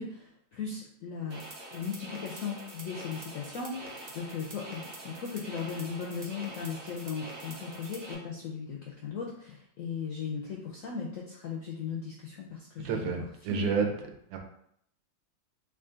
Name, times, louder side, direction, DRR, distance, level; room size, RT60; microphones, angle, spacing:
voice 1, 0.0-1.4 1.7-13.7, left 6 dB, 80° left, -2 dB, 0.7 m, -37 dB
sound 1, 1.3-8.1, right 1 dB, 50° right, 0.9 m, -45 dB
voice 2, 12.8-13.9 14.3-14.4, right 6 dB, 90° right, 3 dB, 1.4 m, -30 dB
3.7 x 2.4 x 3.7 m, 0.71 s
omnidirectional pair, 2.0 m